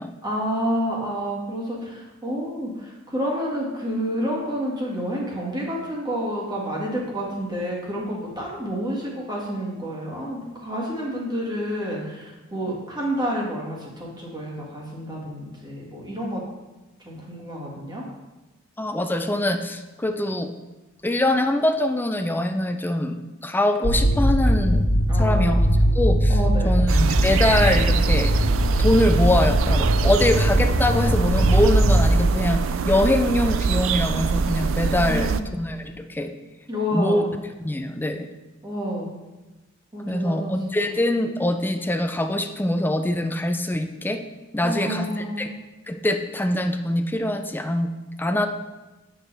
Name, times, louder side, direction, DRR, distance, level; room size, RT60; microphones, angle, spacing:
voice 1, 0.2-16.4 17.0-18.0 25.1-25.8 26.3-26.8 35.0-35.5 36.7-37.3 38.6-39.1 39.9-40.9 44.6-45.6, equal, 20° right, -3 dB, 1.8 m, -29 dB
voice 2, 18.8-20.5 21.0-23.2 23.4-24.9 25.2-25.6 26.0-26.3 26.6-28.3 28.8-36.3 36.9-37.3 37.6-38.3 40.1-44.2 44.5-45.1 45.4-45.5 45.9-47.9 48.2-48.5, left 1 dB, 10° left, 7 dB, 0.4 m, -23 dB
sound 1, 23.8-32.0, equal, 65° left, 1.5 m, -20 dB
sound 2, 26.9-35.4, right 5 dB, 75° right, 0.4 m, -25 dB
9.7 x 6.2 x 3.4 m, 1.1 s
head